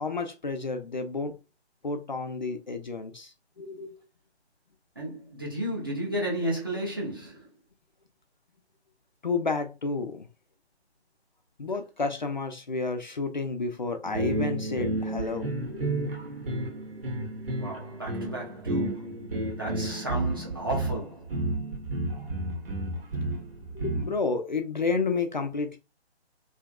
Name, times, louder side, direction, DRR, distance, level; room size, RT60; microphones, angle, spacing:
voice 1, 0.0-1.4 1.8-3.9 9.2-10.3 11.6-16.2 23.7-25.8, left 4 dB, 45° left, 0.4 m, -31 dB
voice 2, 5.0-7.5 17.6-19.2 19.6-21.3, right 1 dB, 20° right, 0.5 m, -33 dB
sound 1, 14.0-24.2, right 2 dB, 60° right, 0.9 m, -31 dB
2.7 x 2.4 x 2.2 m
figure-of-eight pair, 145°, 33 cm